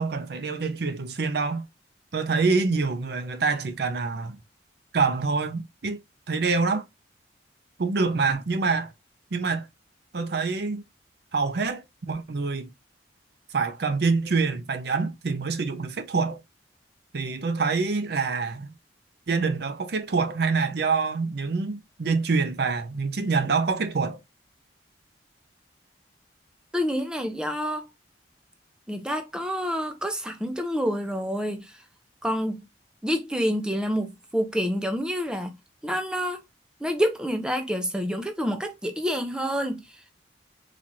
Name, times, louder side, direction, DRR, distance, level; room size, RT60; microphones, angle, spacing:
voice 1, 0.0-1.6 2.1-4.4 4.9-6.0 6.3-6.8 7.8-8.9 9.3-9.7 10.1-10.8 11.3-12.7 13.5-16.4 17.1-18.7 19.3-24.2, right 4 dB, 60° right, 0.5 m, -26 dB
voice 2, 26.7-27.9 28.9-31.7 32.2-32.7 33.0-35.5 35.8-36.4 36.8-39.8, equal, 5° right, 0.4 m, -28 dB
4.0 x 2.4 x 2.9 m
head